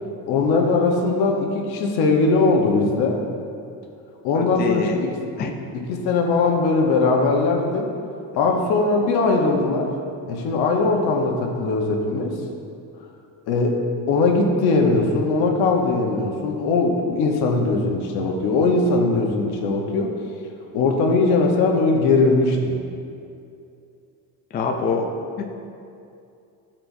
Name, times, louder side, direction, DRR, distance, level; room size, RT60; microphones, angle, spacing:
voice 1, 0.3-3.2 4.2-5.1 5.7-7.9 8.3-9.9 10.3-12.4 13.5-13.8 14.1-20.1 20.7-22.7, left 3 dB, 85° left, 1 dB, 1.1 m, -20 dB
voice 2, 4.3-4.9 5.4-5.6 24.5-25.1 25.4-25.5, left 4 dB, 25° left, 3 dB, 0.4 m, -25 dB
13.0 x 4.4 x 2.7 m, 2.5 s
cardioid pair, 160°, 37 cm